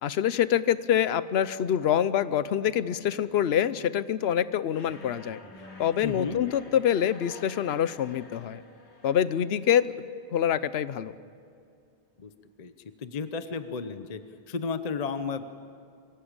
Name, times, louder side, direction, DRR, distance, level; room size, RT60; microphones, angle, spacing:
voice 1, 0.0-5.4 5.8-8.6 9.0-9.9 10.3-11.1, left 9 dB, 70° left, 16 dB, 0.9 m, -25 dB
sound 1, 1.8-4.1 4.8-8.2, equal, 5° left, 1.5 m, -52 dB
sound 2, 4.7-10.3, left 3 dB, 90° left, 2.6 m, -52 dB
voice 2, 6.0-6.4 12.2-12.3 12.6-12.7 13.0-14.2 14.5-15.4, left 5 dB, 40° left, 10 dB, 0.8 m, -33 dB
25.0 x 16.5 x 8.8 m, 2.3 s
omnidirectional pair, 1.1 m